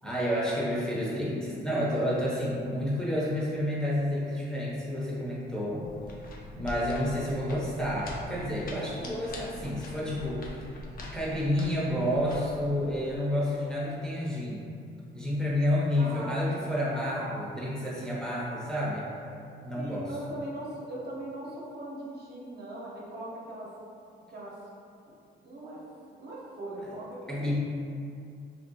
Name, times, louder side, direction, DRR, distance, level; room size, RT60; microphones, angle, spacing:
voice 1, 0.0-5.9 6.2-10.7 11.1-14.7 15.1-19.1 19.6-20.2 27.3-27.5, left 1 dB, 5° left, -7 dB, 0.7 m, -30 dB
sound 1, 5.8-13.2, left 1 dB, 45° left, 0.5 m, -43 dB
voice 2, 16.0-16.5 16.9-17.7 19.8-23.7 24.3-24.5 25.4-25.8 26.2-27.5, right 1 dB, 55° right, -5 dB, 0.8 m, -40 dB
2.9 x 2.7 x 2.7 m, 2.5 s
cardioid pair, 90°, 20 cm